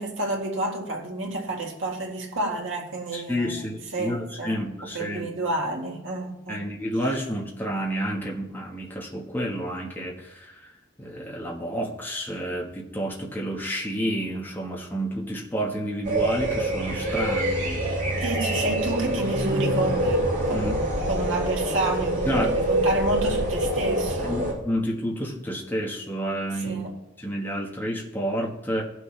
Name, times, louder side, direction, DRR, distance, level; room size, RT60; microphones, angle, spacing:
voice 1, 0.0-6.7 18.2-20.8 21.1-24.4 26.6-27.0, right 2 dB, 90° right, 2.0 m, -30 dB
voice 2, 3.1-5.3 6.5-10.6 11.0-18.2 20.5-20.7 22.2-22.6 24.2-26.9 27.2-28.8, equal, 10° left, 1.4 m, -30 dB
sound 1, 16.0-24.5, right 1 dB, 40° right, 3.1 m, -25 dB
17.5 x 6.2 x 3.3 m
head